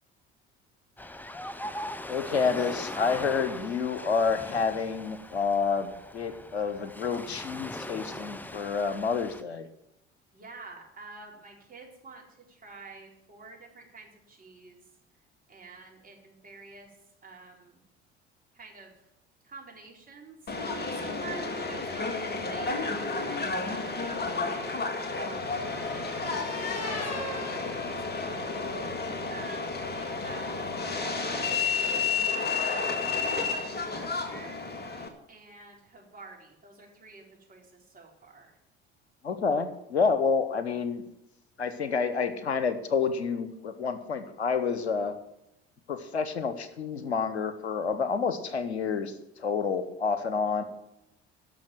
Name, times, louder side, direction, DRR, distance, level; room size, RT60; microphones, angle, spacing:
Ocean, 1.0-9.4, left 1 dB, 5° left, 0.6 m, -40 dB
voice 1, 2.1-9.7 39.2-41.0 41.6-45.1 45.9-50.6, left 5 dB, 85° left, 11 dB, 0.9 m, -29 dB
voice 2, 10.3-14.8 15.5-17.0 17.2-17.8 18.5-19.0 19.4-24.6 25.0-25.5 25.9-28.9 29.3-31.8 32.3-34.7 35.3-38.6, right 4 dB, 25° right, -1 dB, 4.1 m, -48 dB
Subway metro underground, 20.5-35.1, left 4 dB, 30° left, 1.9 m, -31 dB
sound 1, 24.5-28.8, left 3 dB, 55° left, 5.0 m, -42 dB
11.5 x 6.3 x 9.0 m, 0.84 s
figure-of-eight pair, 60°, 32 cm